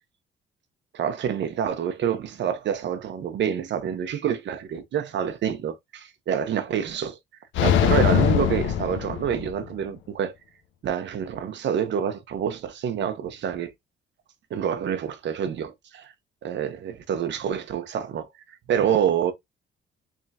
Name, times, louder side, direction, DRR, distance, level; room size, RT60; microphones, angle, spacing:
voice 1, 0.9-7.2 7.6-10.3 10.8-13.7 14.5-16.1 16.4-18.3 18.7-19.3, right 8 dB, 65° right, 0.9 m, -27 dB
sound 1, 7.5-9.7, left 9 dB, 75° left, 0.6 m, -22 dB
3.6 x 3.2 x 2.8 m
cardioid pair, 90°, 20 cm